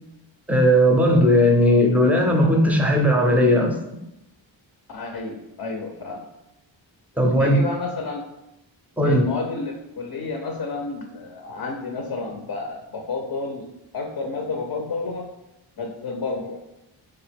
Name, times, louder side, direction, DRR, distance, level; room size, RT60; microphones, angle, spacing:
voice 1, 0.5-4.0 7.2-7.6 9.0-9.2, equal, 5° right, 2 dB, 0.5 m, -17 dB
voice 2, 4.9-6.3 7.3-8.3 9.0-13.7 13.9-15.3 15.8-16.6, left 3 dB, 50° left, 3 dB, 0.5 m, -30 dB
3.5 x 2.8 x 3.4 m, 0.89 s
wide cardioid pair, 90°, 47 cm